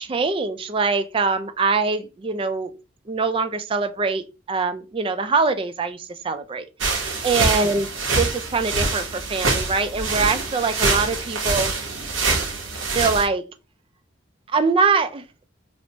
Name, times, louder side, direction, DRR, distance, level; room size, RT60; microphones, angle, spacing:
voice 1, 0.0-2.7 3.1-6.7 7.2-7.9 8.1-11.7 13.0-13.4 14.5-15.2, right 4 dB, 25° right, 0.3 m, -23 dB
sound 1, 6.8-13.3, right 3 dB, 75° right, 0.8 m, -25 dB
4.3 x 2.0 x 2.7 m
head